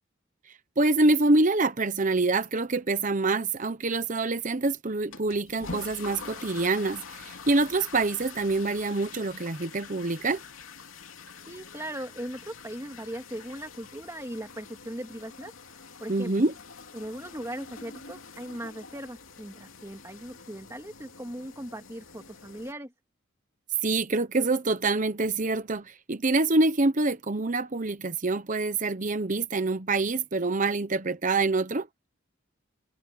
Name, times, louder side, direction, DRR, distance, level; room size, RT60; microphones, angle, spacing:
voice 1, 0.8-10.4 16.1-16.5 23.8-31.9, right 3 dB, 40° right, 0.9 m, -26 dB
sound 1, 5.1-22.7, left 5 dB, 85° left, 2.7 m, -46 dB
voice 2, 11.5-15.5 16.0-16.3 16.9-22.9, right 1 dB, 15° right, 2.6 m, -39 dB
head